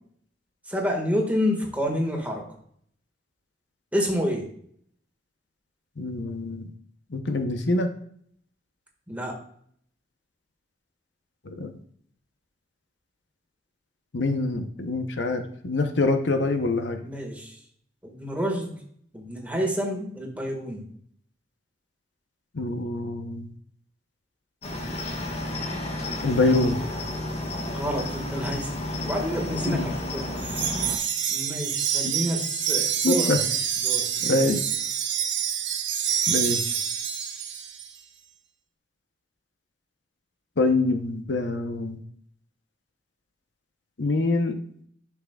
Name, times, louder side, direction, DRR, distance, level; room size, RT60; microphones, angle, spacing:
voice 1, 0.7-2.4 3.9-4.5 9.1-9.4 17.0-17.6 18.0-18.7 19.1-20.8 27.7-28.7 29.0-30.3 31.3-33.3 33.8-34.4, equal, 10° right, 1 dB, 1.7 m, -28 dB
voice 2, 6.0-6.7 7.1-7.9 11.4-11.7 14.1-17.0 22.5-23.5 26.2-26.8 29.7-29.9 32.0-32.2 33.0-33.4 34.2-34.6 36.3-36.6 40.6-42.0 44.0-44.6, left 2 dB, 75° left, 7 dB, 0.8 m, -25 dB
Cricket, 24.6-31.0, left 1 dB, 35° left, 1.3 m, -32 dB
Wind chime, 30.4-37.9, right 8 dB, 90° right, 0.9 m, -27 dB
11.5 x 6.0 x 2.3 m, 0.64 s
head